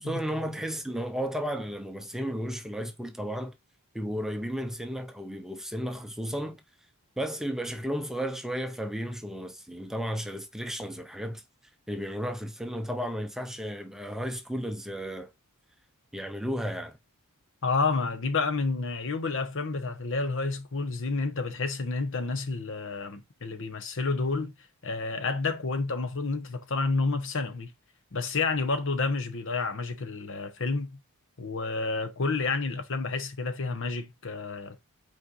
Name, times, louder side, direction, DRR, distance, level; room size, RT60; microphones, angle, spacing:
voice 1, 0.0-3.6 3.9-6.6 7.2-11.4 11.9-15.3 16.1-17.0, equal, ahead, 0.7 m, -33 dB
voice 2, 17.6-24.5 24.8-27.7 28.1-31.0 31.4-34.8, left 3 dB, 60° left, 1.1 m, -30 dB
5.6 x 4.5 x 4.1 m
head